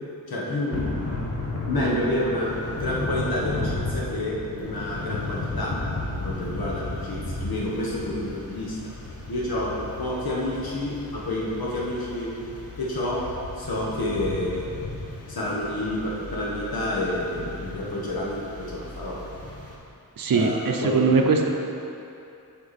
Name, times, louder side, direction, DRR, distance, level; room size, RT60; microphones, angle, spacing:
voice 1, 0.3-0.7 1.7-5.7 6.1-8.8 9.3-9.7 10.0-12.3 12.8-13.2 13.6-14.7 15.3-18.4 18.7-19.2 20.3-21.3, left 1 dB, 85° left, -5 dB, 1.4 m, -29 dB
Thunder / Rain, 0.7-19.7, left 2 dB, 40° left, 1.2 m, -34 dB
voice 2, 20.2-21.5, right 4 dB, 70° right, 2 dB, 0.7 m, -21 dB
8.0 x 5.3 x 4.2 m, 2.8 s
wide cardioid pair, 130°, 36 cm